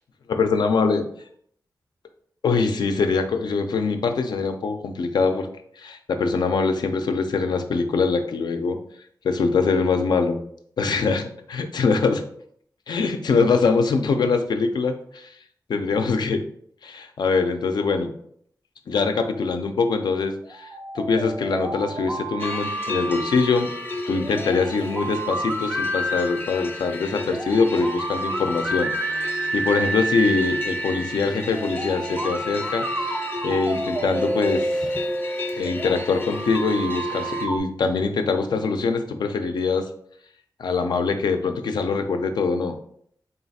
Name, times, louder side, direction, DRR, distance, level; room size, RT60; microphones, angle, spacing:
voice 1, 0.3-1.1 2.4-5.5 5.8-8.8 9.2-10.3 10.8-11.2 11.5-12.2 12.9-15.3 15.7-16.5 16.8-18.1 18.9-23.7 24.1-34.7 35.6-39.9 40.6-42.8, left 4 dB, 90° left, 6 dB, 0.5 m, -23 dB
sound 1, 20.4-37.6, right 1 dB, 25° right, 0.4 m, -30 dB
sound 2, 22.4-37.5, left 2 dB, 30° left, 0.5 m, -34 dB
3.8 x 2.4 x 4.0 m, 0.65 s
wide cardioid pair, 80°, 7 cm